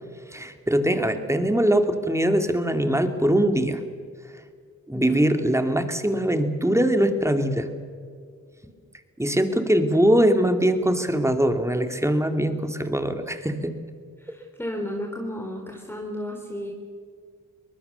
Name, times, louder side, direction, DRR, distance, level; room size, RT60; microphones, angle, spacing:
voice 1, 0.3-3.8 4.9-7.7 9.2-13.8, right 1 dB, 10° right, 7 dB, 2.6 m, -22 dB
voice 2, 14.2-16.7, left 1 dB, 5° left, 0 dB, 3.8 m, -33 dB
24.0 x 19.5 x 7.0 m, 2.1 s
cardioid pair, 60°, 33 cm